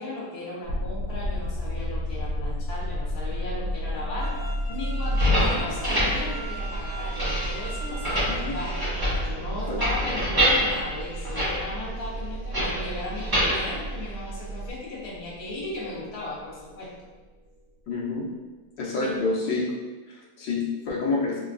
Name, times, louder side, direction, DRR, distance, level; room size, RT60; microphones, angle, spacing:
voice 1, 0.0-8.8 9.2-16.9 19.0-19.2, left 2 dB, 40° left, -7 dB, 1.1 m, -36 dB
sound 1, 0.7-17.6, equal, 55° right, 1.1 m, -34 dB
sound 2, 4.2-9.2, right 1 dB, 60° left, 1.5 m, -40 dB
sound 3, 5.0-14.7, equal, 15° right, 1.0 m, -27 dB
voice 2, 8.3-8.6 9.7-9.8 17.9-18.3 18.8-19.8 20.1-21.4, left 3 dB, 85° left, -3 dB, 1.4 m, -28 dB
3.4 x 3.0 x 2.5 m, 1.3 s
omnidirectional pair, 1.9 m